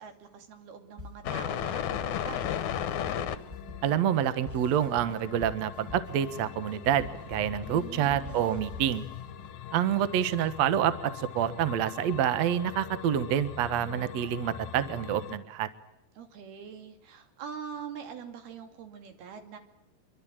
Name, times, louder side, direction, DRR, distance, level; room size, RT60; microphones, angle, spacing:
voice 1, 0.0-2.5 7.7-8.5 16.2-19.6, right 7 dB, 80° right, 7 dB, 4.5 m, -44 dB
sound 1, 1.0-9.5, left 3 dB, 20° right, 4.3 m, -47 dB
sound 2, 1.2-15.4, left 10 dB, 65° left, 2.1 m, -38 dB
voice 2, 3.8-9.1 9.7-15.7, right 10 dB, 60° right, 13 dB, 1.9 m, -27 dB
26.0 x 24.0 x 8.9 m, 0.79 s
omnidirectional pair, 4.4 m